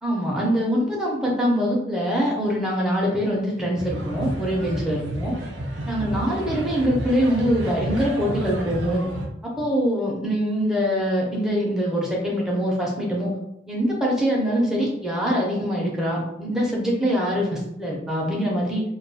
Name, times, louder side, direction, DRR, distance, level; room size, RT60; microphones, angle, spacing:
voice 1, 0.0-5.3 5.9-9.0 9.6-13.3 13.7-18.8, equal, 5° right, -4 dB, 0.5 m, -23 dB
sound 1, 3.8-9.3, right 1 dB, 90° right, 0.5 m, -31 dB
2.3 x 2.2 x 2.6 m, 0.81 s
head